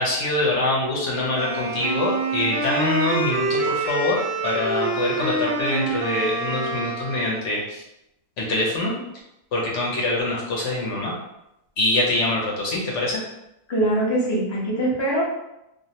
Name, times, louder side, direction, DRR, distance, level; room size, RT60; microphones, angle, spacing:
voice 1, 0.0-7.8 8.4-8.9 9.5-11.1 11.8-13.2, left 2 dB, 65° left, -3 dB, 0.9 m, -24 dB
Wind instrument woodwind instrument, 1.3-7.5, right 3 dB, 85° right, 1.1 m, -26 dB
voice 2, 13.7-15.3, right 1 dB, 45° left, -5 dB, 0.3 m, -22 dB
2.5 x 2.0 x 2.7 m, 0.86 s
omnidirectional pair, 1.5 m